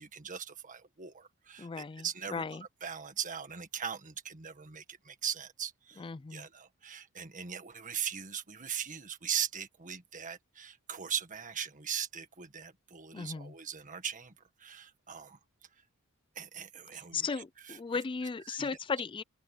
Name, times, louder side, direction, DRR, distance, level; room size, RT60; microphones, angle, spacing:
voice 1, 0.0-6.0 6.3-15.4 16.3-17.8 18.5-18.7, right 8 dB, 35° right, 1.6 m, -40 dB
voice 2, 1.6-2.1 2.3-2.6 6.0-6.5 13.1-13.5 17.1-19.2, left 5 dB, 25° left, 0.4 m, -36 dB
head